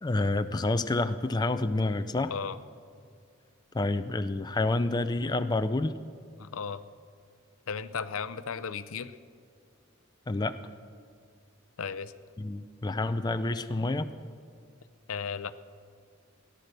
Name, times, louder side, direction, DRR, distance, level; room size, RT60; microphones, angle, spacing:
voice 1, 0.0-2.3 3.7-5.9 10.3-10.6 12.4-14.1, left 2 dB, 20° left, 9 dB, 0.4 m, -28 dB
voice 2, 6.4-6.8 7.7-9.1 11.8-12.1 15.1-15.5, left 6 dB, 80° left, 14 dB, 0.6 m, -35 dB
17.5 x 11.0 x 6.6 m, 2.2 s
head